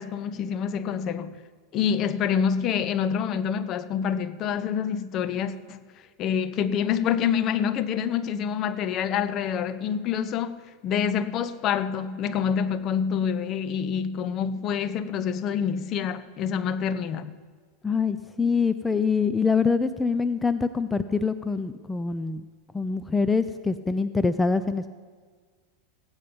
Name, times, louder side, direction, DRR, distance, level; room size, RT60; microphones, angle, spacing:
voice 1, 0.0-1.3 1.7-5.8 6.2-10.6 10.8-17.3, left 7 dB, 40° left, 0.8 m, -27 dB
voice 2, 17.8-22.4 22.7-24.9, left 4 dB, 10° left, 0.5 m, -25 dB
16.5 x 9.6 x 5.3 m
supercardioid pair, 120°, 0 cm